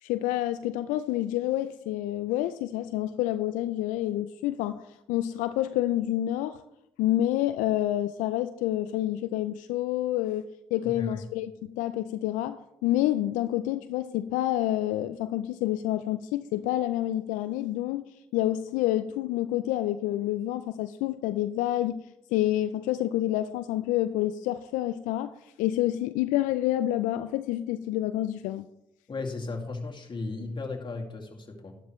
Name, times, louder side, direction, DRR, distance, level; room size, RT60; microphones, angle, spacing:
voice 1, 0.0-6.6 7.0-10.5 10.7-28.7, left 14 dB, 80° left, 0.4 m, -28 dB
voice 2, 10.8-11.2 29.1-31.8, left 3 dB, 35° left, 2.3 m, -35 dB
12.5 x 11.5 x 3.1 m
hypercardioid pair, 50°, 13 cm